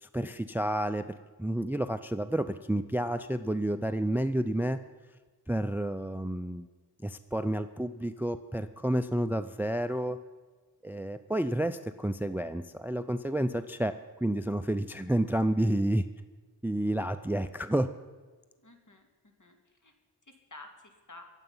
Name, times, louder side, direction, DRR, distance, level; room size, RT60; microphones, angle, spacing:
voice 1, 0.0-4.8 5.5-6.7 7.0-10.2 10.8-16.0 16.6-17.9, right 1 dB, 5° right, 12 dB, 0.5 m, -30 dB
voice 2, 18.6-19.6 19.8-19.9 20.3-21.2, left 2 dB, 45° left, 4 dB, 2.3 m, -51 dB
23.5 x 8.0 x 5.6 m, 1.4 s
wide cardioid pair, 55°, 41 cm